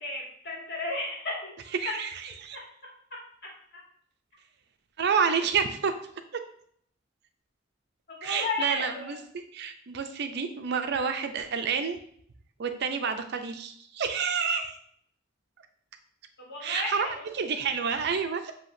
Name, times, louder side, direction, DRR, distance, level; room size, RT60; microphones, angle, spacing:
voice 1, 0.0-1.5 1.8-1.9 8.1-9.1 16.4-17.2, left 2 dB, 55° left, -3 dB, 1.6 m, -33 dB
voice 2, 1.8-2.6 5.0-5.9 6.3-6.4 8.2-12.0 12.6-14.8 16.6-18.5, right 6 dB, 60° right, 7 dB, 0.5 m, -29 dB
7.4 x 2.8 x 2.6 m, 0.64 s
head